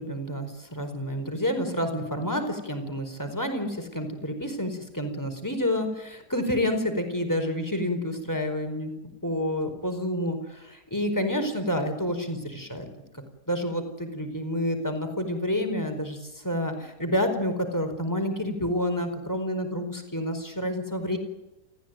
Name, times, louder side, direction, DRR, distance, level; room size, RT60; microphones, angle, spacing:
voice 1, 0.0-8.9 9.2-12.9 13.5-21.2, left 1 dB, 10° left, 6 dB, 4.7 m, -29 dB
29.5 x 15.0 x 9.3 m, 1.0 s
omnidirectional pair, 1.9 m